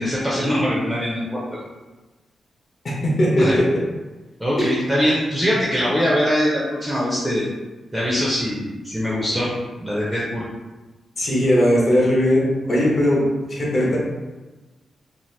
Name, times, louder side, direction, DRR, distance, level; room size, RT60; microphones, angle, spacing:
voice 1, 0.0-1.6 3.4-3.6 4.4-7.5 7.9-9.5 9.8-10.4, equal, ahead, -6 dB, 0.5 m, -22 dB
voice 2, 2.8-3.8 4.6-4.7 11.2-13.2 13.5-14.0, equal, 40° left, -4 dB, 0.7 m, -19 dB
2.8 x 2.4 x 3.2 m, 1.2 s
wide cardioid pair, 175°, 0 cm